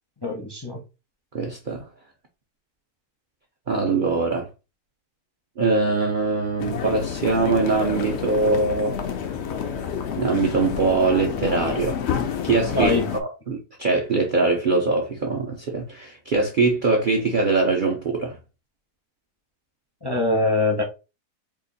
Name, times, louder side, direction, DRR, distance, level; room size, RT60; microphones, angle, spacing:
voice 1, 0.2-0.8 12.7-13.0 20.0-20.8, left 2 dB, 25° left, 0.6 m, -23 dB
voice 2, 1.3-1.8 3.7-4.5 5.6-9.0 10.2-12.0 12.4-18.4, right 3 dB, 55° right, 0.5 m, -22 dB
sound 1, 6.6-13.2, left 7 dB, 70° left, 0.6 m, -29 dB
2.9 x 2.5 x 3.9 m
omnidirectional pair, 1.7 m